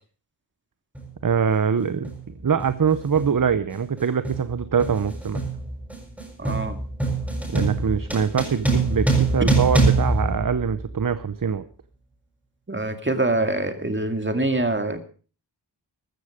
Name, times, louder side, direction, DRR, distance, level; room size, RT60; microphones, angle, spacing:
sound 1, 0.9-1.1 2.0-2.3 2.6-11.1, right 3 dB, 5° right, 6.6 m, -25 dB
voice 1, 1.2-5.4 7.5-11.6, right 6 dB, 45° right, 13 dB, 0.8 m, -23 dB
voice 2, 6.4-6.8 12.7-15.0, right 2 dB, 25° right, 7 dB, 2.2 m, -24 dB
15.0 x 13.0 x 5.0 m, 0.38 s
wide cardioid pair, 80°, 46 cm